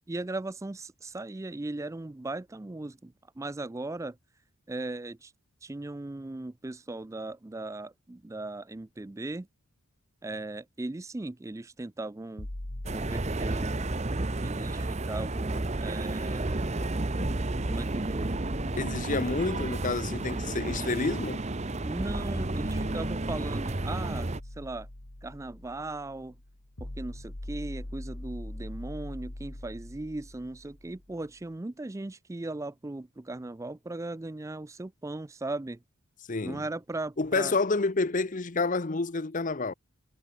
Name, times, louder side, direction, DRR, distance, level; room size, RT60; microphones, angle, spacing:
voice 1, 0.1-4.2 4.7-5.3 5.6-9.5 10.2-12.5 12.9-13.7 14.4-16.9 17.7-18.3 21.8-24.9 25.2-26.4 26.8-35.8 36.4-37.5, right 2 dB, 15° right, 0.3 m, -38 dB
sound 1, 12.8-24.4, right 2 dB, 30° right, 0.8 m, -32 dB
voice 2, 18.8-21.5 36.3-36.6 37.2-39.7, left 3 dB, 35° left, 0.7 m, -29 dB
sound 2, 22.0-31.2, left 1 dB, 55° left, 2.3 m, -43 dB
head